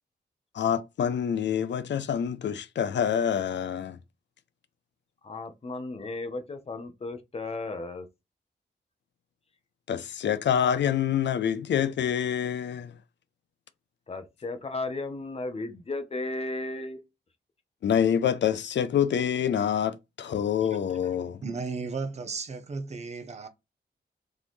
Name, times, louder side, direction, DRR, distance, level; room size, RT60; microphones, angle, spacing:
voice 1, 0.5-4.0 9.9-12.9 17.8-21.4, left 8 dB, 80° left, 0.6 m, -26 dB
voice 2, 5.2-8.1 14.1-17.0, left 2 dB, 35° left, 0.8 m, -35 dB
voice 3, 21.1-23.5, right 4 dB, 35° right, 0.7 m, -35 dB
3.9 x 3.8 x 3.1 m
wide cardioid pair, 175°, 18 cm